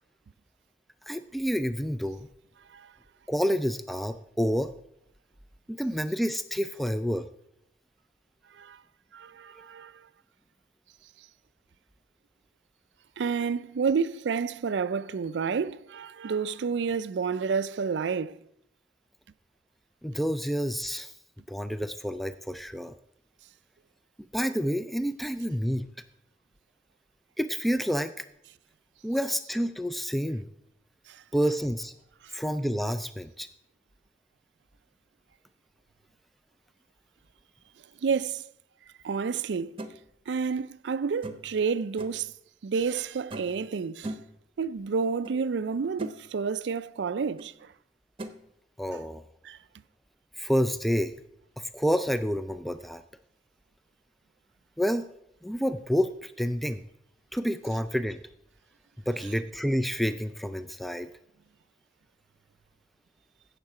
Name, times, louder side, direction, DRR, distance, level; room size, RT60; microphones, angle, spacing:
voice 1, 1.1-2.3 3.3-4.7 5.7-7.3 20.0-21.1 21.5-22.9 24.3-25.9 27.4-28.3 29.0-30.5 31.3-31.9 32.3-33.5 48.8-49.2 50.4-51.1 51.6-53.0 54.8-55.1 55.4-56.8 57.3-58.2 59.1-61.1, equal, ahead, 0.3 m, -29 dB
voice 2, 9.1-10.0 13.2-18.4 31.1-31.2 32.2-32.4 38.0-38.5 39.0-39.8 40.3-42.3 42.6-44.1 44.6-47.7 49.4-49.6, right 5 dB, 85° right, 0.4 m, -30 dB
sound 1, 39.8-39.9 41.2-41.6 42.0-42.3 43.3-43.6 44.0-44.4 45.2-45.4 45.7-46.2 47.4-47.5 48.2-48.4, right 1 dB, 30° right, 0.9 m, -39 dB
16.0 x 6.6 x 4.8 m
head